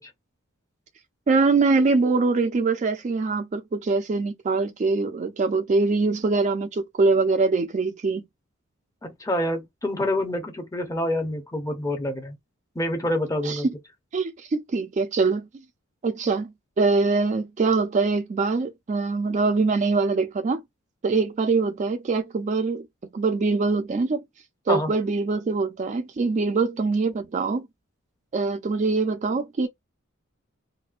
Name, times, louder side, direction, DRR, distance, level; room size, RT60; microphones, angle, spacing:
voice 1, 1.3-8.2 13.4-13.6 14.1-15.5 16.0-20.6 21.0-22.9 23.1-24.2 24.7-27.7 28.3-29.7, right 3 dB, 35° right, 0.3 m, -23 dB
voice 2, 9.0-12.4 12.8-13.7 24.7-24.9, left 1 dB, 15° left, 0.6 m, -27 dB
4.1 x 2.2 x 2.3 m
head